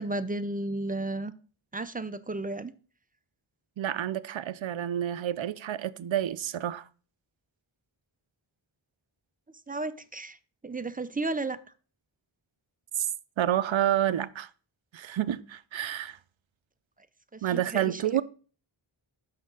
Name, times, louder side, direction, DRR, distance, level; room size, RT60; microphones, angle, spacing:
voice 1, 0.0-1.3 1.7-2.7 9.7-10.4 10.6-11.6 17.3-18.0, right 2 dB, 20° right, 0.5 m, -33 dB
voice 2, 3.8-6.9 13.0-13.1 13.4-14.5 14.9-16.2 17.4-18.2, right 11 dB, 70° right, 0.5 m, -29 dB
6.4 x 6.0 x 3.7 m
wide cardioid pair, 50°, 48 cm